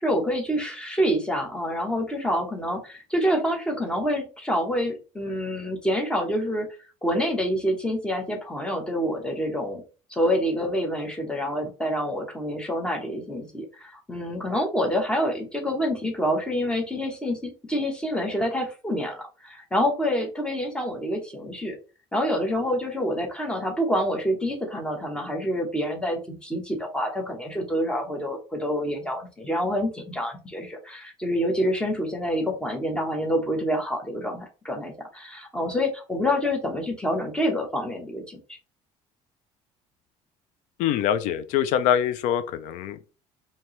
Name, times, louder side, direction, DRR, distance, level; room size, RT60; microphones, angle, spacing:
voice 1, 0.0-6.7 7.0-9.8 10.1-21.8 22.1-38.6, equal, 5° left, 0.9 m, -27 dB
voice 2, 40.8-43.1, left 9 dB, 80° left, 0.4 m, -24 dB
4.5 x 2.8 x 3.0 m
cardioid pair, 160°, 13 cm